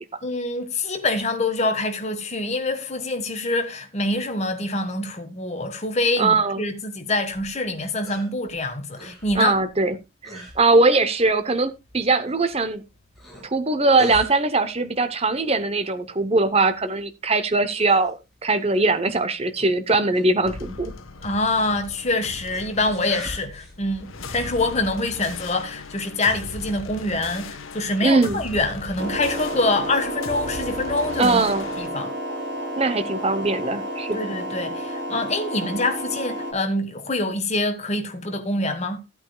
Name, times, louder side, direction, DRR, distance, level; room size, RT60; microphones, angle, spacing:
voice 1, 0.2-9.5 21.2-31.4 31.8-32.1 34.1-39.0, left 2 dB, 30° left, 1.4 m, -25 dB
voice 2, 6.2-6.6 9.3-10.0 10.2-12.8 13.4-18.2 18.4-20.9 28.0-28.4 31.2-31.7 32.8-34.2, right 3 dB, 30° right, 0.8 m, -21 dB
sound 1, 7.2-25.9, equal, ahead, 3.8 m, -45 dB
sound 2, 20.4-31.9, left 3 dB, 75° left, 1.2 m, -38 dB
sound 3, 29.0-36.5, equal, 55° right, 4.3 m, -31 dB
15.5 x 8.6 x 2.3 m
head